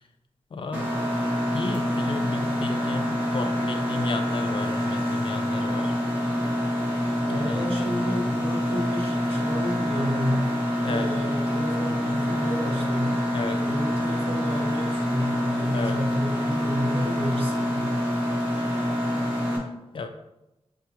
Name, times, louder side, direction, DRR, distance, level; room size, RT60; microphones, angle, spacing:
voice 1, 0.5-0.9 1.5-5.9 7.3-7.8 8.1-8.2 10.8-11.1 13.3-13.6 15.7-16.0 18.5-18.7 19.9-20.1, left 3 dB, 50° left, 6 dB, 0.4 m, -33 dB
Mechanisms, 0.7-19.6, equal, 15° right, 1.1 m, -26 dB
voice 2, 7.3-10.5 10.8-13.2 13.6-18.0, equal, 60° right, -2 dB, 1.0 m, -31 dB
6.2 x 2.3 x 2.9 m, 0.93 s
wide cardioid pair, 140°, 11 cm